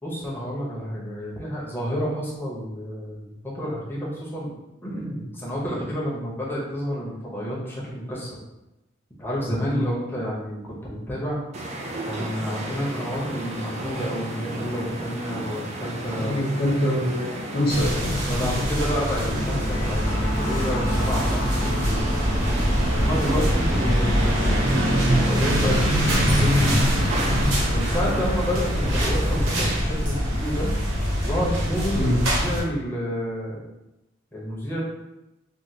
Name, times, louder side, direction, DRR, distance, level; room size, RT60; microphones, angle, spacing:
voice 1, 0.0-4.5 4.8-8.4 9.2-11.4 12.0-16.5 18.3-22.2 22.9-27.1 27.7-30.7 31.2-33.6 34.3-34.8, equal, 10° left, -6 dB, 0.8 m, -30 dB
sound 1, 11.5-29.8, right 1 dB, 35° right, 0.4 m, -33 dB
voice 2, 16.2-18.7 23.8-24.0 31.9-32.2, left 1 dB, 50° left, -3 dB, 0.6 m, -25 dB
sound 2, 17.7-32.6, equal, 85° right, 0.9 m, -23 dB
sound 3, 19.2-25.2, equal, 85° left, 1.0 m, -28 dB
3.5 x 2.3 x 2.7 m, 0.98 s
head